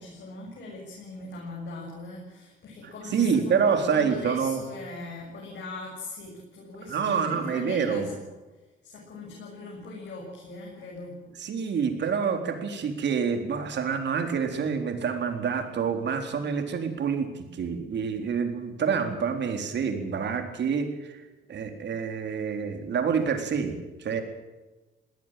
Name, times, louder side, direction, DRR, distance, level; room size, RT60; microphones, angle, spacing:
voice 1, 0.0-8.3 8.8-11.2, left 2 dB, 60° left, -2 dB, 7.3 m, -40 dB
voice 2, 2.8-4.6 6.9-8.1 11.4-21.2 21.5-24.2, right 6 dB, 60° right, 6 dB, 3.9 m, -27 dB
21.5 x 17.0 x 7.7 m, 1.2 s
cardioid pair, 90°, 20 cm